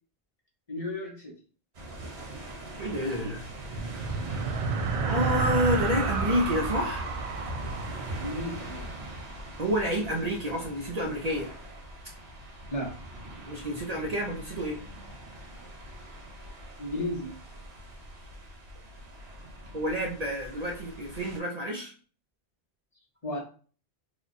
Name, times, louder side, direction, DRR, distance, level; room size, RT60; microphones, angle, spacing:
voice 1, 0.7-1.3 8.2-8.9 12.7-12.9 16.8-17.3 23.2-23.5, left 1 dB, 35° left, -1 dB, 0.9 m, -33 dB
sound 1, 1.7-21.4, right 1 dB, 90° right, 1.4 m, -43 dB
voice 2, 2.8-3.5 5.0-7.1 9.6-11.5 13.5-14.8 19.7-21.9, equal, 45° right, -1 dB, 0.7 m, -29 dB
sound 2, 3.5-9.3, right 4 dB, 60° right, 0.3 m, -31 dB
3.0 x 2.3 x 4.0 m, 0.40 s
omnidirectional pair, 1.1 m